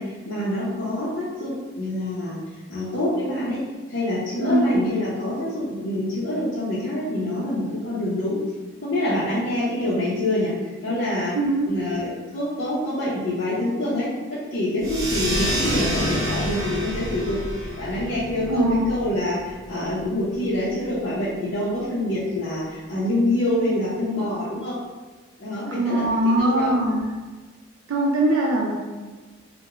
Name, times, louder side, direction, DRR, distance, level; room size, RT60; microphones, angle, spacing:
voice 1, 0.0-2.4 2.7-3.6 3.9-8.4 8.8-11.4 11.7-24.8 25.4-26.0 26.4-26.8, left 1 dB, 55° left, -11 dB, 0.6 m, -26 dB
voice 2, 4.4-4.8 11.3-11.7 18.5-18.8 25.7-27.2 27.9-28.8, right 1 dB, 80° right, -2 dB, 0.3 m, -21 dB
sound 1, 14.8-19.9, equal, 25° right, 0.7 m, -28 dB
2.3 x 2.1 x 2.9 m, 1.3 s
head